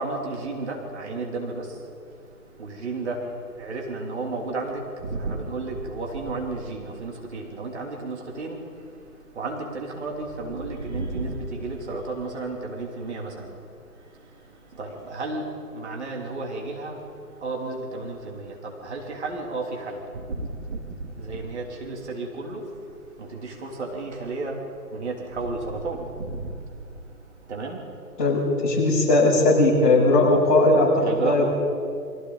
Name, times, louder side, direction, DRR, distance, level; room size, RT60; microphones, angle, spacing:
voice 1, 0.0-28.2 31.0-31.5, right 3 dB, 45° right, 0 dB, 3.1 m, -33 dB
voice 2, 28.2-30.9 31.2-31.5, left 2 dB, 30° left, -5 dB, 6.5 m, -18 dB
29.5 x 23.0 x 4.0 m, 2.4 s
figure-of-eight pair, 150°, 48 cm